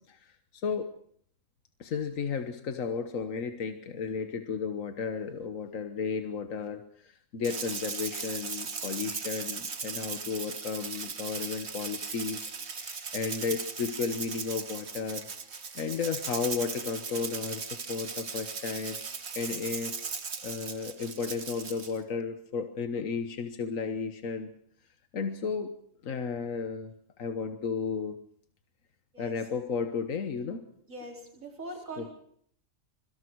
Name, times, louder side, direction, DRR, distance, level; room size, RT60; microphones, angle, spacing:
voice 1, 0.1-0.9 1.8-15.2 15.8-17.6 17.9-19.0 19.4-24.5 25.1-25.7 26.0-28.2 29.2-30.6 32.0-32.1, left 5 dB, 80° left, 7 dB, 1.6 m, -34 dB
Rattle (instrument), 7.4-22.0, right 5 dB, 55° right, 1.7 m, -38 dB
voice 2, 30.9-32.1, right 2 dB, 85° right, 1 dB, 4.7 m, -42 dB
26.0 x 23.5 x 4.7 m, 0.63 s
omnidirectional pair, 1.4 m